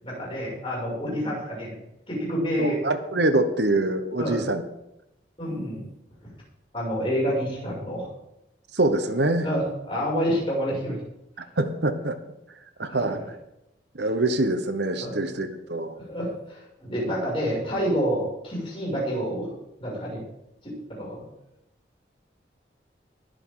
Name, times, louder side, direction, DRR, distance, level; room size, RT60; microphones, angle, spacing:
voice 1, 0.0-1.8 2.1-2.8 4.2-4.4 5.4-5.9 6.7-8.1 9.4-11.0 12.9-13.2 15.0-15.1 15.9-20.2 20.6-21.2, equal, 30° left, -5 dB, 6.6 m, -28 dB
voice 2, 2.6-4.6 8.7-9.5 11.6-12.2 12.8-13.2 13.9-15.9, right 2 dB, 70° right, 8 dB, 1.1 m, -24 dB
20.5 x 9.3 x 3.9 m, 0.86 s
head